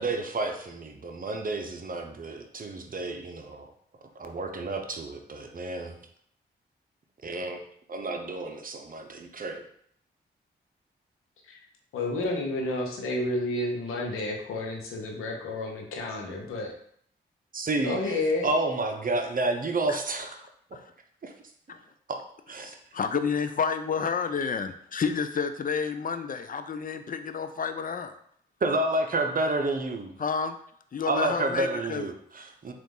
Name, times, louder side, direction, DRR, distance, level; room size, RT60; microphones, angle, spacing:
voice 1, 0.0-3.7 4.2-6.0 7.2-7.6 7.9-9.6 17.5-20.5 20.7-20.8 21.2-21.3 22.5-22.8 28.6-30.0 31.1-32.7, right 2 dB, 40° right, 4 dB, 0.7 m, -30 dB
voice 2, 11.9-16.7 17.8-18.5, left 2 dB, 85° left, 1 dB, 0.8 m, -30 dB
voice 3, 22.6-28.1 30.2-30.6 30.9-32.1, left 6 dB, 40° left, 9 dB, 0.4 m, -30 dB
3.8 x 2.5 x 3.7 m, 0.66 s
supercardioid pair, 45°, 21 cm